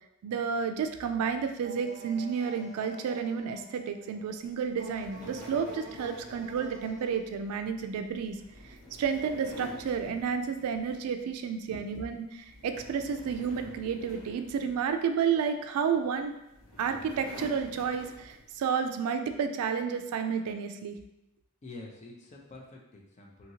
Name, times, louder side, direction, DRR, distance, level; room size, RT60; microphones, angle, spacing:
voice 1, 0.2-8.4 8.6-16.3 16.8-21.0, right 6 dB, 80° right, 7 dB, 0.3 m, -31 dB
sound 1, 1.6-7.2, right 2 dB, 35° right, 0.7 m, -47 dB
sound 2, 4.8-11.3 11.7-12.0 12.4-15.4 16.2-18.6, left 1 dB, 85° left, 1.0 m, -49 dB
voice 2, 21.6-23.5, left 2 dB, 30° left, 0 dB, 0.5 m, -47 dB
2.8 x 2.8 x 2.7 m, 0.87 s
head